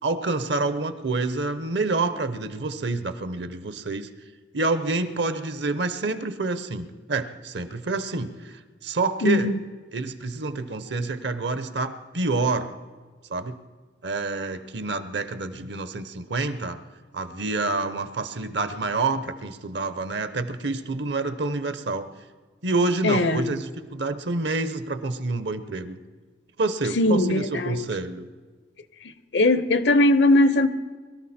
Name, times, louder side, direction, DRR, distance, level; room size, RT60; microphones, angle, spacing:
voice 1, 0.0-4.1 4.5-9.5 9.9-12.7 13.3-13.6 14.0-16.8 17.1-22.1 22.6-26.0 26.6-28.3, right 3 dB, 60° right, 0.9 m, -28 dB
voice 2, 9.2-9.6 23.0-23.6 27.0-27.9 29.3-30.7, left 2 dB, 65° left, 0.8 m, -20 dB
23.0 x 13.0 x 4.3 m
head